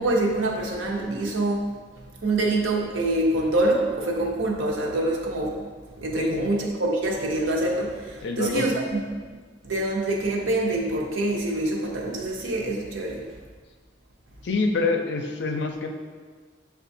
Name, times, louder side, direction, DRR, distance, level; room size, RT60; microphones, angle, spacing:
voice 1, 0.0-5.7 6.0-9.2 9.6-13.3, right 2 dB, 85° right, -1 dB, 0.7 m, -25 dB
voice 2, 6.2-6.5 8.2-8.6 14.4-15.9, left 3 dB, 60° left, 4 dB, 0.4 m, -26 dB
6.9 x 2.4 x 2.6 m, 1.5 s
head